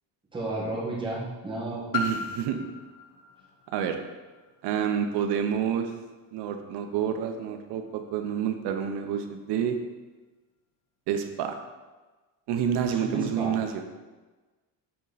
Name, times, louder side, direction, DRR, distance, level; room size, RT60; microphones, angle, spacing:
voice 1, 0.3-1.8 2.5-2.7 12.8-13.5, right 2 dB, 10° right, -6 dB, 1.5 m, -32 dB
Piano, 1.9-7.4 8.1-8.2, left 4 dB, 50° left, 0.7 m, -38 dB
voice 2, 1.9-2.6 3.7-4.0 4.6-5.9 6.3-9.8 11.1-11.6 12.5-13.8, right 8 dB, 70° right, 6 dB, 0.8 m, -28 dB
7.9 x 4.2 x 4.0 m, 1.2 s
cardioid pair, 180°, 43 cm